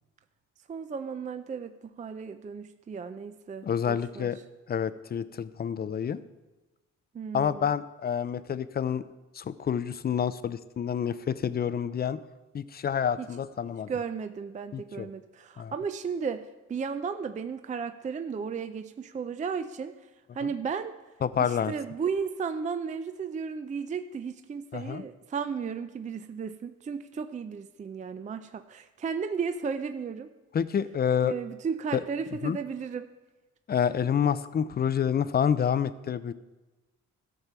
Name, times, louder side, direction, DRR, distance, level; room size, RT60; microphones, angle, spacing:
voice 1, 0.7-4.3 7.1-7.7 13.2-13.3 13.9-19.9 20.3-21.0 21.4-30.3 31.2-33.1, right 6 dB, 25° right, 10 dB, 0.4 m, -34 dB
voice 2, 3.6-4.4 4.7-6.2 7.3-9.0 9.4-12.2 12.5-13.9 14.7-15.1 15.6-15.7 21.2-21.7 24.7-25.0 30.5-31.3 31.9-32.0 32.4-32.6 33.7-36.3, left 8 dB, 30° left, 15 dB, 0.5 m, -28 dB
13.0 x 4.5 x 6.8 m, 1.1 s
cardioid pair, 90°, 30 cm